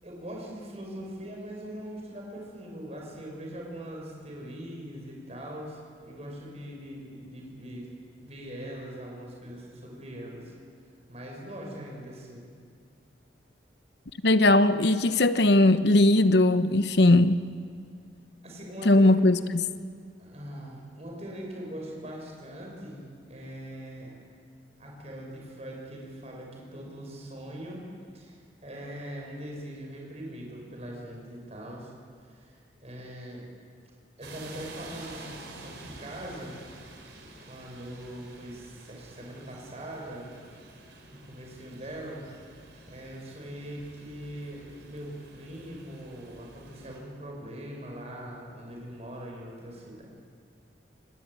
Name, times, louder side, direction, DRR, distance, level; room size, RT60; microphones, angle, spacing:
voice 1, 0.0-7.9 8.2-10.5 11.1-12.5 18.4-19.1 20.2-24.1 24.8-27.9 28.1-31.9 32.2-32.6 32.8-33.4 34.2-36.5 37.5-40.3 41.1-50.0, equal, 35° right, 6.4 m, -41 dB
voice 2, 14.2-17.4 18.8-19.7, left 2 dB, 65° left, 1.0 m, -19 dB
sound 1, 34.2-47.0, right 2 dB, 75° right, 4.6 m, -49 dB
26.0 x 20.5 x 9.1 m
head